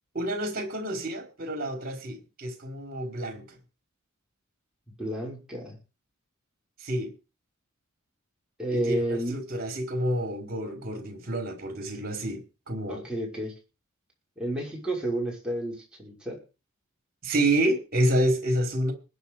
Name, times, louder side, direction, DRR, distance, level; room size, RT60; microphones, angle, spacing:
voice 1, 0.1-3.5 6.8-7.1 8.7-12.4 12.7-13.0 17.2-18.9, right 1 dB, 45° right, 4 dB, 4.9 m, -28 dB
voice 2, 5.0-5.8 8.6-9.4 12.9-13.5 14.4-16.4, right 1 dB, 5° right, -3 dB, 6.0 m, -31 dB
20.5 x 9.1 x 5.0 m, 0.32 s
head